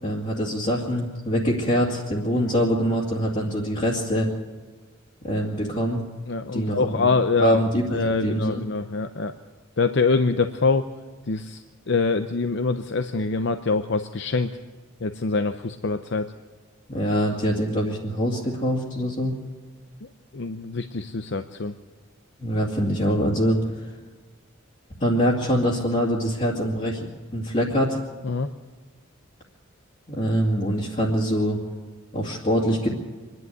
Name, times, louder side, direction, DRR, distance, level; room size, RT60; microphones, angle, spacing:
voice 1, 0.0-4.3 5.2-6.0 6.5-7.1 7.4-8.6 16.9-19.3 22.4-23.6 25.0-27.1 27.3-28.0 30.1-31.6 32.1-32.9, equal, 35° left, -4 dB, 2.4 m, -24 dB
voice 2, 6.3-9.3 9.8-10.9 11.3-14.6 15.0-16.3 20.3-21.7 28.2-28.5, left 3 dB, 60° left, 9 dB, 0.7 m, -24 dB
25.5 x 11.0 x 9.4 m, 1.4 s
head